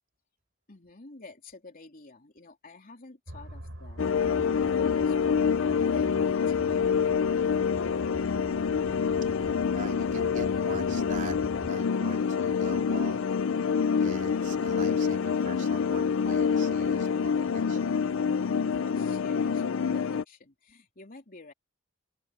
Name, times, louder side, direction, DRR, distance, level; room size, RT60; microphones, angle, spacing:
voice 1, 0.7-7.9 18.7-21.5, left 3 dB, 45° left, 3.4 m, -49 dB
sound 1, 3.3-11.7, right 1 dB, 70° right, 3.9 m, -44 dB
sound 2, 4.0-20.2, left 6 dB, 70° left, 0.5 m, -26 dB
voice 2, 9.4-11.4 11.7-13.2 14.0-18.0, right 3 dB, 40° right, 3.6 m, -43 dB
open air
head